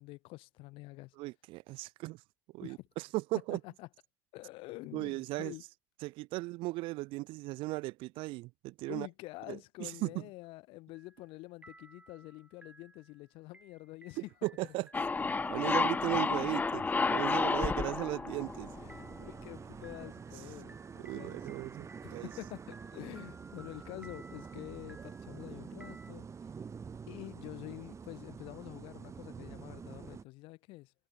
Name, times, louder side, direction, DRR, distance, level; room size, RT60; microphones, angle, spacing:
voice 1, 0.0-1.2 2.6-2.9 3.5-3.9 4.3-5.6 8.9-14.2 17.1-17.2 18.8-21.4 22.0-26.3 27.1-30.9, left 21 dB, 65° left, 3.4 m, -47 dB
voice 2, 1.2-2.2 2.5-3.6 4.9-5.5 6.0-9.1 9.5-10.3 14.2-14.9 15.5-18.7 21.0-22.3, right 21 dB, 60° right, 0.6 m, -37 dB
sound 1, 10.9-11.4 11.6-26.1, right 2 dB, 15° right, 3.1 m, -58 dB
sound 2, 14.9-19.4, left 4 dB, 15° left, 0.4 m, -31 dB
sound 3, 18.3-30.2, right 6 dB, 30° right, 0.9 m, -47 dB
figure-of-eight pair, 55°, 10 cm